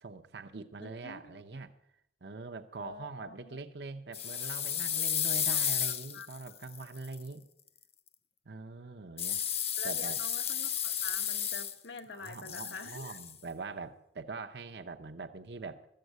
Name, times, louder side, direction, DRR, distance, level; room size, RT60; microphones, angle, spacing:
voice 1, 0.0-1.7 2.2-7.4 8.4-9.5 9.8-10.2 12.1-15.9, right 3 dB, 70° right, 6 dB, 0.8 m, -43 dB
voice 2, 0.8-1.4 2.8-3.6 5.8-6.3 9.8-13.2, left 4 dB, 85° left, 8 dB, 1.1 m, -47 dB
sound 1, 4.1-7.2 9.2-12.0 12.3-13.3, left 9 dB, 35° left, 0.7 m, -33 dB
13.5 x 7.8 x 8.0 m, 0.79 s
head